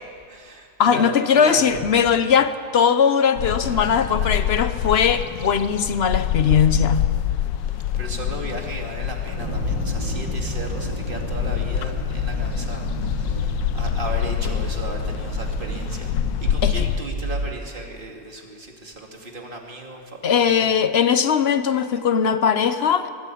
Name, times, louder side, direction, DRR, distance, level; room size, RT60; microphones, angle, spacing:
voice 1, 0.3-1.7 3.1-3.2 3.6-3.9 4.4-4.7 7.6-20.7, right 2 dB, 30° right, 1 dB, 2.6 m, -35 dB
voice 2, 0.8-7.0 16.6-16.9 20.2-23.1, left 7 dB, 55° left, 12 dB, 0.7 m, -19 dB
sound 1, 3.4-17.0, left 11 dB, 85° left, 1.4 m, -26 dB
sound 2, 9.3-17.6, right 2 dB, 90° right, 2.7 m, -30 dB
21.5 x 15.0 x 8.5 m, 2.2 s
omnidirectional pair, 1.9 m